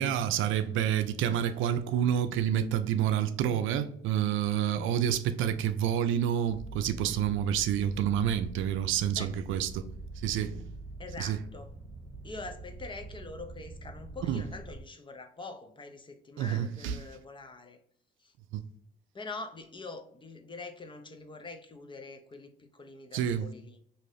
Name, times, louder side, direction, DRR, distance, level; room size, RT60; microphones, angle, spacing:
voice 1, 0.0-9.9 10.2-10.6 11.2-11.4 14.3-14.4 16.4-17.0 23.1-23.5, right 9 dB, 80° right, 0.4 m, -28 dB
sound 1, 6.5-14.8, right 2 dB, 35° right, 1.0 m, -44 dB
voice 2, 11.0-11.7 12.2-17.8 18.2-18.3 19.1-23.8, left 3 dB, 25° left, 0.5 m, -44 dB
2.6 x 2.5 x 3.2 m
cardioid pair, 90°, 20 cm